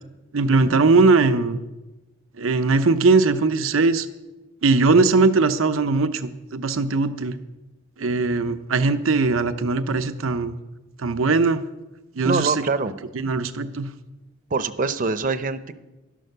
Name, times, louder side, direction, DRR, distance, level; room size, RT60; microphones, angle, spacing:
voice 1, 0.3-1.6 2.4-4.1 4.6-7.4 8.0-10.6 11.0-11.6 12.2-12.5 13.1-13.9, right 3 dB, 80° right, 10 dB, 0.8 m, -20 dB
voice 2, 12.2-12.9 14.5-15.8, right 4 dB, 45° right, 12 dB, 0.7 m, -24 dB
12.0 x 11.5 x 6.7 m, 1.1 s
head